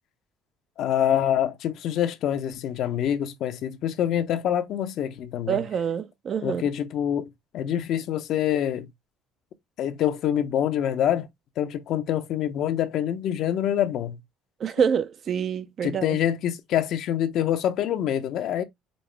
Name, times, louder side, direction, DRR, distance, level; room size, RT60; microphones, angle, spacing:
voice 1, 0.8-5.6 6.4-7.3 7.5-8.9 9.8-11.3 11.6-14.2 15.8-18.6, left 10 dB, 65° left, 0.6 m, -25 dB
voice 2, 5.5-6.6 14.6-16.2, right 7 dB, 50° right, 0.5 m, -26 dB
5.2 x 2.0 x 3.2 m
supercardioid pair, 90°, 0 cm